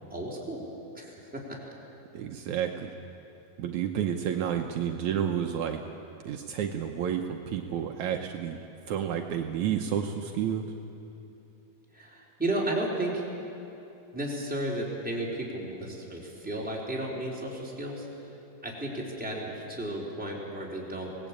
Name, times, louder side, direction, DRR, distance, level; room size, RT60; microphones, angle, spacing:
voice 1, 0.1-0.6 0.9-1.6 11.9-13.3 14.1-21.2, right 1 dB, ahead, -4 dB, 3.6 m, -34 dB
voice 2, 2.1-2.9 3.6-5.8 6.2-8.6 8.9-10.7, right 9 dB, 85° right, 4 dB, 1.6 m, -30 dB
25.0 x 19.0 x 8.6 m, 2.9 s
omnidirectional pair, 4.7 m